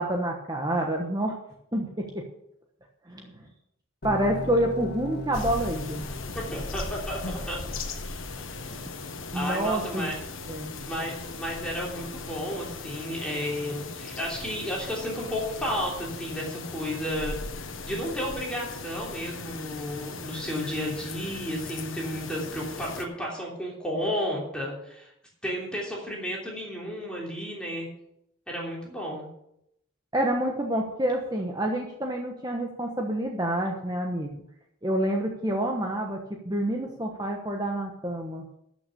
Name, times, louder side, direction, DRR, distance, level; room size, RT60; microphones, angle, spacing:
voice 1, 0.0-1.4 1.7-2.3 3.1-3.4 4.0-6.0 8.6-8.9 9.3-10.1 10.5-10.7 30.1-34.4 34.8-38.4, right 1 dB, 20° right, 1 dB, 1.1 m, -28 dB
sound 1, 4.0-10.0, left 2 dB, 50° left, 2.0 m, -40 dB
sound 2, 5.3-23.0, left 3 dB, 80° left, 1.4 m, -38 dB
voice 2, 6.3-7.6 9.3-10.2 10.8-17.4 17.8-25.1 25.4-27.9 28.5-29.3, equal, 5° left, -4 dB, 3.1 m, -32 dB
13.5 x 6.3 x 6.8 m, 0.77 s
head